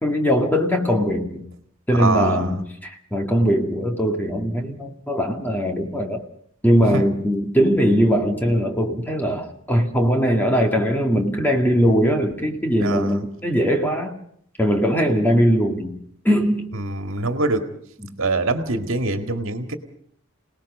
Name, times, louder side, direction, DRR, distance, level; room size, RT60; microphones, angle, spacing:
voice 1, 0.0-1.5 1.9-6.2 6.6-14.2 14.6-16.0 16.2-16.7 18.0-18.1, equal, 10° left, 3 dB, 2.0 m, -20 dB
voice 2, 1.9-2.5 6.9-7.0 12.8-13.2 16.7-17.6 18.2-19.7, right 2 dB, 70° right, 7 dB, 1.9 m, -24 dB
28.0 x 18.5 x 5.4 m, 0.65 s
head